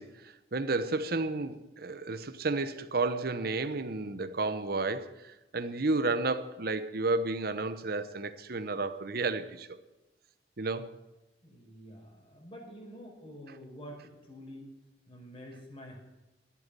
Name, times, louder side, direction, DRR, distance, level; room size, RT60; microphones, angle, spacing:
voice 1, 0.0-9.8 10.6-10.9, right 3 dB, 60° right, 0.9 m, -32 dB
voice 2, 11.4-14.7 15.1-16.0, equal, 30° left, 4.9 m, -48 dB
13.5 x 8.5 x 9.7 m
head